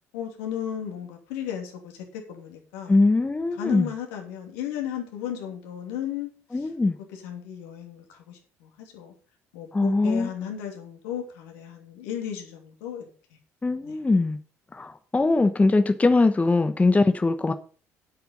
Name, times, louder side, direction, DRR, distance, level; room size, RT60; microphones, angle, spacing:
voice 1, 0.1-3.0 3.6-6.7 7.1-9.1 9.5-13.1 13.8-14.0, left 9 dB, 70° left, 2.8 m, -35 dB
voice 2, 2.9-3.9 6.5-7.0 9.7-10.3 13.6-14.4 14.7-17.5, left 3 dB, 20° left, 1.0 m, -21 dB
9.8 x 7.9 x 5.3 m
figure-of-eight pair, 55°, 8 cm